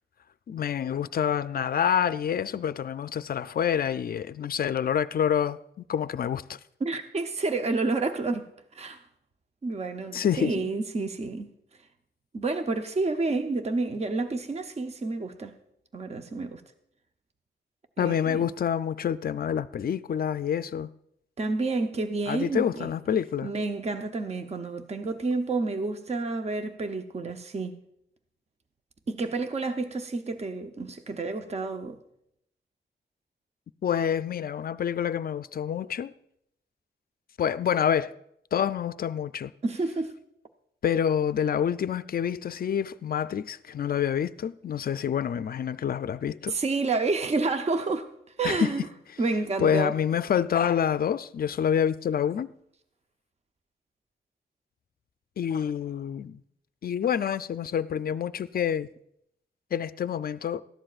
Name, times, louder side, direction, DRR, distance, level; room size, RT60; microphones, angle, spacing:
voice 1, 0.5-6.6 10.1-10.7 18.0-20.9 22.3-23.5 33.8-36.1 37.4-38.1 38.5-39.5 40.8-46.6 48.4-48.7 49.6-52.5 55.4-56.4 56.8-58.9 59.7-60.6, left 8 dB, 50° left, 0.4 m, -27 dB
voice 2, 6.8-9.0 9.6-11.5 12.3-15.6 15.9-16.6 18.0-18.5 21.4-22.9 23.4-27.8 29.1-32.0 39.6-40.2 46.5-48.1 48.4-48.8 49.2-49.9, right 3 dB, 35° right, 0.7 m, -29 dB
19.0 x 13.5 x 2.4 m
wide cardioid pair, 130°, 19 cm